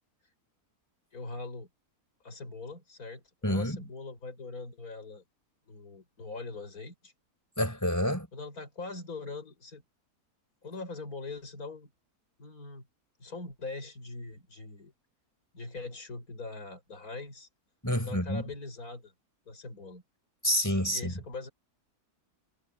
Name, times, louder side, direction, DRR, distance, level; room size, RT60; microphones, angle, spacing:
voice 1, 1.1-1.7 2.2-5.2 5.7-7.1 8.3-9.8 10.6-11.9 12.4-12.9 13.2-14.9 15.5-17.5 18.0-19.1 19.5-20.0 20.9-21.5, left 3 dB, 65° left, 5.9 m, -42 dB
voice 2, 3.4-3.8 7.6-8.3 17.8-18.4 20.4-21.1, equal, 10° left, 5.4 m, -28 dB
omnidirectional pair, 1.7 m